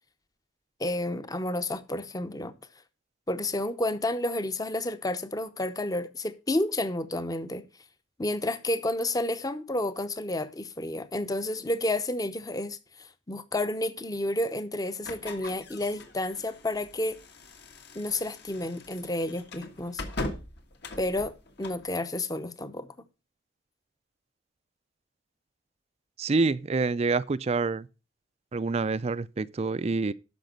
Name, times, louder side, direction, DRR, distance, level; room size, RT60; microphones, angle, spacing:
voice 1, 0.8-2.5 3.3-7.6 8.2-17.2 17.9-20.0 21.0-21.3 21.6-22.9, left 1 dB, 20° left, 0.7 m, -30 dB
sound 1, 15.0-21.9, left 2 dB, 60° left, 1.6 m, -41 dB
voice 2, 26.2-27.9 28.5-30.1, right 3 dB, 35° right, 0.4 m, -27 dB
12.5 x 5.1 x 5.2 m
head